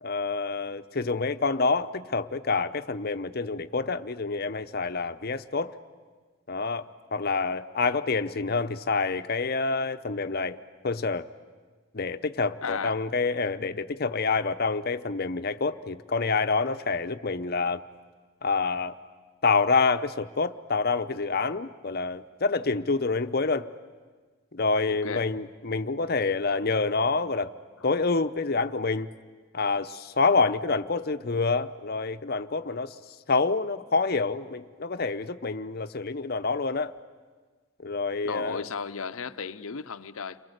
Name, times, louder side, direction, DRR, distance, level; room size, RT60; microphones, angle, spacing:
voice 1, 0.0-5.7 6.5-10.6 10.8-11.3 11.9-17.8 18.4-18.9 19.4-23.7 24.5-27.5 27.8-29.1 29.5-32.9 33.3-36.9 37.8-38.6, left 4 dB, 50° left, 0.8 m, -27 dB
voice 2, 12.6-13.0 24.9-25.3 27.8-27.9 38.2-40.4, left 5 dB, 75° left, 0.7 m, -35 dB
30.0 x 23.5 x 8.1 m
head